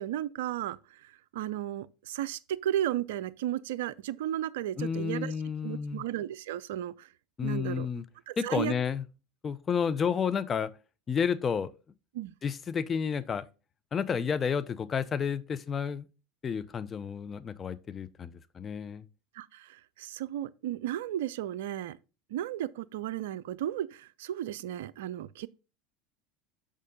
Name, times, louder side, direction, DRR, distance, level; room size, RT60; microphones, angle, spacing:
voice 1, 0.0-5.3 5.6-7.1 7.4-7.9 8.3-8.7 12.1-12.3 19.3-22.0 22.3-25.5, right 12 dB, 70° right, 0.4 m, -34 dB
voice 2, 4.8-6.0 7.4-8.0 8.4-9.0 9.4-10.7 11.1-11.7 12.4-13.4 13.9-16.0 16.4-19.0, left 6 dB, 30° left, 0.7 m, -31 dB
6.5 x 5.3 x 5.2 m
hypercardioid pair, 80°, 0 cm